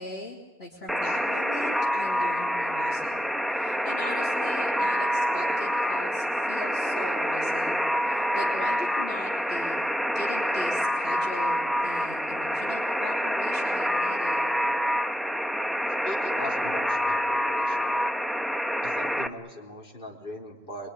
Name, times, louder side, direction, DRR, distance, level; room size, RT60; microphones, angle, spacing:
voice 1, 0.0-9.8 10.2-14.5, left 1 dB, 70° left, -3 dB, 3.6 m, -40 dB
Alarm, 0.9-19.3, equal, ahead, 1.0 m, -27 dB
voice 2, 16.0-17.8 18.8-20.9, left 1 dB, 55° left, -2 dB, 4.2 m, -39 dB
25.5 x 23.5 x 9.9 m, 1.1 s
omnidirectional pair, 1.1 m